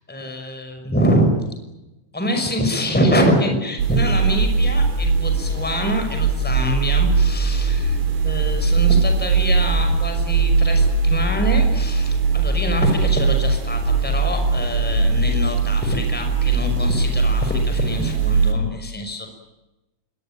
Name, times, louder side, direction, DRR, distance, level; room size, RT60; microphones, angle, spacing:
voice 1, 0.1-1.3 2.1-8.0 8.2-19.3, equal, ahead, 5 dB, 5.2 m, -24 dB
sound 1, 3.8-18.5, right 4 dB, 55° right, 5.0 m, -20 dB
26.5 x 22.5 x 8.9 m, 0.99 s
omnidirectional pair, 5.4 m